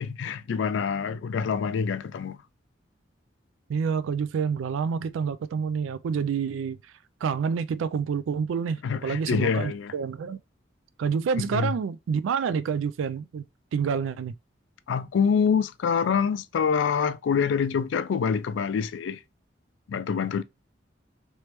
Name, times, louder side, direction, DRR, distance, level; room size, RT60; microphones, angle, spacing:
voice 1, 0.0-2.4 8.8-9.9 11.4-11.7 14.9-19.2 19.9-20.4, left 6 dB, 75° left, 0.3 m, -26 dB
voice 2, 3.7-6.8 7.2-10.4 11.0-13.5 13.7-14.3, right 6 dB, 90° right, 0.3 m, -28 dB
3.3 x 3.1 x 3.0 m
head